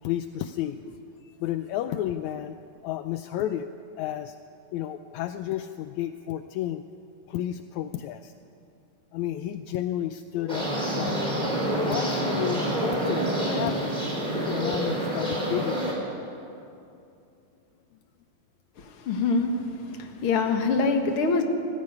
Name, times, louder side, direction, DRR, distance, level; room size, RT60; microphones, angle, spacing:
voice 1, 0.0-0.8 1.4-2.6 2.8-3.7 4.0-4.4 4.7-6.8 7.3-8.3 9.1-11.2 11.8-15.8, left 12 dB, 80° left, 9 dB, 1.7 m, -32 dB
sound 1, 10.5-15.9, right 1 dB, 10° right, 4.5 m, -27 dB
voice 2, 18.8-19.6 19.8-21.4, left 4 dB, 50° left, 4 dB, 2.0 m, -25 dB
20.5 x 14.5 x 9.6 m, 2.6 s
omnidirectional pair, 3.8 m